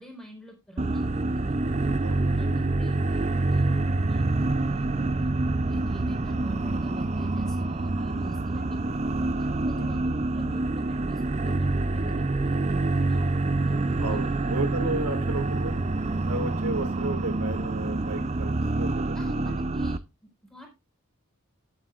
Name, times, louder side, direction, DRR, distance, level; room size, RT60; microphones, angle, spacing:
voice 1, 0.0-1.9 2.3-5.3 5.7-14.4 19.1-20.7, equal, ahead, 1 dB, 4.3 m, -46 dB
sound 1, 0.8-20.0, right 2 dB, 30° right, 0.5 m, -26 dB
voice 2, 14.0-15.9 16.3-19.1, right 2 dB, 90° right, 6 dB, 2.3 m, -33 dB
17.5 x 7.8 x 2.4 m, 0.24 s
head